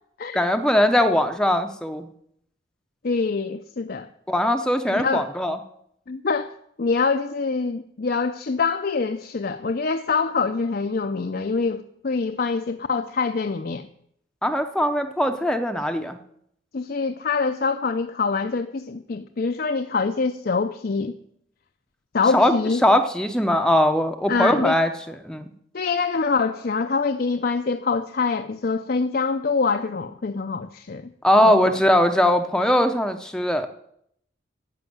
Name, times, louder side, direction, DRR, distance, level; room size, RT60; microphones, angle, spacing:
voice 1, 0.3-2.1 4.3-5.6 14.4-16.2 22.3-22.5 22.8-25.5 31.2-33.7, left 1 dB, 5° left, 0.6 m, -20 dB
voice 2, 3.0-4.1 5.0-5.2 6.1-6.5 6.8-13.9 16.7-21.1 22.1-22.8 24.3-24.7 25.7-31.1 31.4-31.6, left 4 dB, 50° left, 0.5 m, -25 dB
10.5 x 7.0 x 9.3 m
head